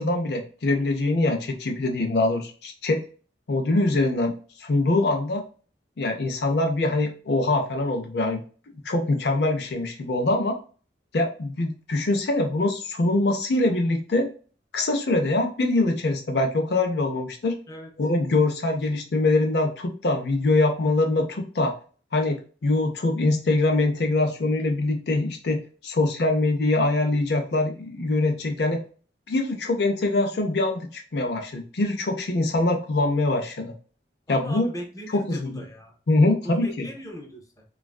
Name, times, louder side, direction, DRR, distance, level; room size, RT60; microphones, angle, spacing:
voice 1, 0.0-3.0 3.5-4.3 4.6-5.4 6.0-8.4 8.8-10.6 11.1-14.3 14.7-17.6 18.0-21.7 22.1-28.8 29.3-33.7 34.3-34.7 35.1-35.6 36.1-36.9, left 2 dB, 65° left, 4 dB, 0.5 m, -23 dB
voice 2, 34.3-36.0 36.4-37.6, equal, 20° left, 1 dB, 0.6 m, -38 dB
3.4 x 2.4 x 2.3 m, 0.39 s
head